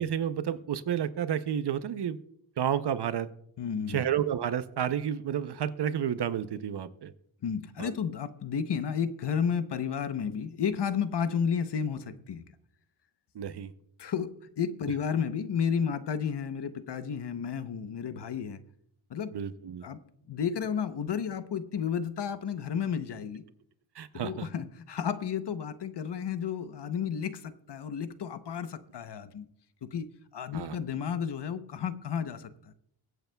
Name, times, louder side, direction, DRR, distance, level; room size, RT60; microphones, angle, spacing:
voice 1, 0.0-2.2 2.6-3.3 3.9-7.1 7.8-7.9 13.4-13.7 19.3-19.8 24.0-24.5 30.5-30.8, right 9 dB, 60° right, 13 dB, 0.7 m, -31 dB
voice 2, 3.6-4.0 7.4-12.4 14.0-18.6 19.1-19.3 19.8-20.0 20.3-23.4 24.1-29.5 29.8-32.7, left 7 dB, 60° left, 11 dB, 0.8 m, -32 dB
23.0 x 8.0 x 2.3 m, 0.71 s
wide cardioid pair, 110°, 47 cm